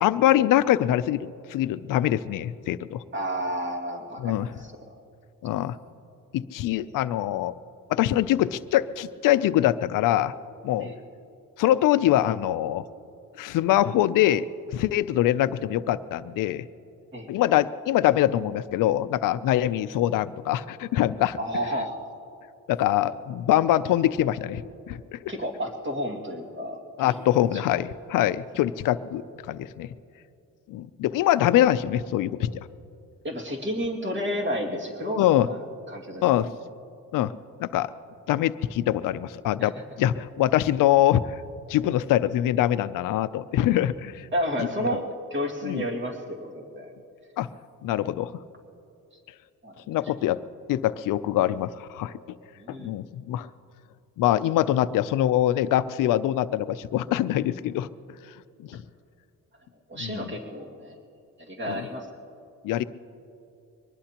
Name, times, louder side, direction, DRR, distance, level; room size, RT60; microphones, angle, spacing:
voice 1, 0.0-3.0 4.2-4.5 5.4-5.8 6.3-7.5 7.9-10.3 10.6-10.9 11.6-12.9 13.4-14.5 14.7-16.7 17.3-21.4 22.7-24.6 24.9-25.3 27.0-29.9 30.7-32.7 35.1-35.5 36.2-36.5 37.1-37.3 37.6-37.9 38.3-41.3 41.7-44.3 44.6-44.7 45.6-45.8 47.4-47.5 47.8-48.3 49.9-50.4 50.7-52.1 52.7-53.5 54.2-57.9 58.7-58.8 60.0-60.3 61.7-61.8 62.6-62.8, left 13 dB, 75° left, 13 dB, 0.5 m, -24 dB
voice 2, 3.1-4.7 10.8-11.0 17.1-17.3 21.4-22.0 25.3-27.6 33.2-35.6 35.9-36.5 39.6-39.8 44.3-45.0 45.3-46.9 49.6-49.8 52.6-52.9 59.9-61.0 61.5-62.1, equal, 35° right, -1 dB, 2.3 m, -31 dB
23.5 x 19.5 x 2.9 m, 2.6 s
cardioid pair, 145°, 32 cm